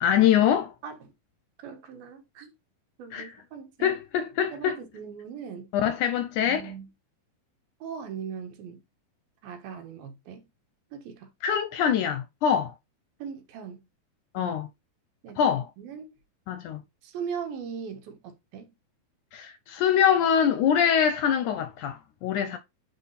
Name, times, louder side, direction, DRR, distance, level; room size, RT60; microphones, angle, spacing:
voice 1, 0.0-0.7 3.1-3.3 3.8-4.8 5.8-6.6 11.4-12.7 14.3-14.7 15.4-15.7 16.5-16.8 19.3-22.6, left 8 dB, 75° left, 2.0 m, -24 dB
voice 2, 0.8-1.1 1.6-2.5 3.0-4.0 4.5-5.7 6.4-6.9 7.8-8.8 9.4-10.4 10.9-11.3 13.2-13.8 14.4-14.6 15.2-16.1 17.0-18.7, right 7 dB, 85° right, 3.2 m, -39 dB
9.8 x 3.9 x 4.1 m
omnidirectional pair, 4.1 m